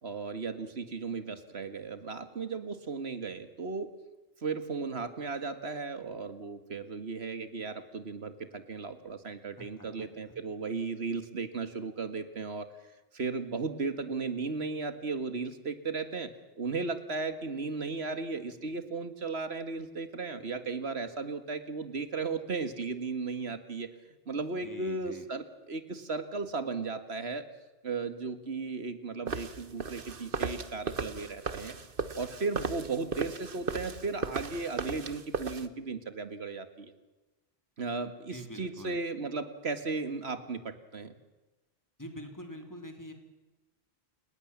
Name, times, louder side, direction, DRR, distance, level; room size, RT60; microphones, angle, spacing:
voice 1, 0.0-3.9 4.4-12.7 13.1-16.3 16.6-23.9 24.3-27.5 27.8-31.8 32.1-36.9 37.8-41.1, right 4 dB, 85° right, 10 dB, 2.1 m, -35 dB
voice 2, 9.6-10.4 24.6-25.3 38.3-39.0 42.0-43.1, equal, 15° left, 4 dB, 3.5 m, -45 dB
sound 1, 29.3-35.7, right 5 dB, 60° right, 1.4 m, -36 dB
29.5 x 18.5 x 7.4 m, 1.1 s
omnidirectional pair, 1.1 m